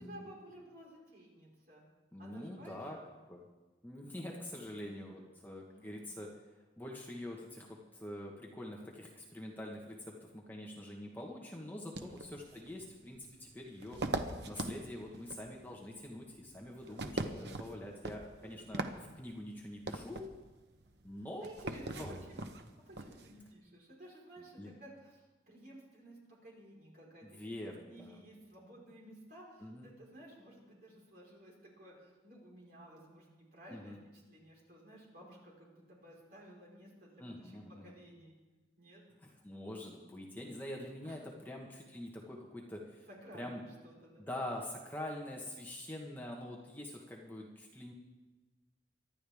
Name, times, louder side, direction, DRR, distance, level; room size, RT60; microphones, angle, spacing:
voice 1, 0.0-1.8 2.2-3.1 4.8-5.3 5.7-6.1 11.9-12.2 16.9-17.0 17.8-17.9 18.4-18.7 21.4-22.0 22.3-27.5 27.9-34.0 34.3-38.3 38.8-39.0 41.0-41.2 43.1-44.2, right 1 dB, 50° right, -4 dB, 4.5 m, -55 dB
voice 2, 2.1-3.0 3.3-3.5 3.8-6.3 6.8-18.8 19.1-20.2 21.0-21.5 22.0-22.2 24.4-24.7 27.2-28.2 29.6-29.9 33.7-34.0 37.2-38.0 39.2-43.1 43.3-43.6 44.2-47.9, left 1 dB, 10° left, -1 dB, 1.4 m, -45 dB
sound 1, 12.0-23.5, right 2 dB, 65° right, 0.9 m, -42 dB
24.5 x 11.5 x 3.6 m, 1.2 s
head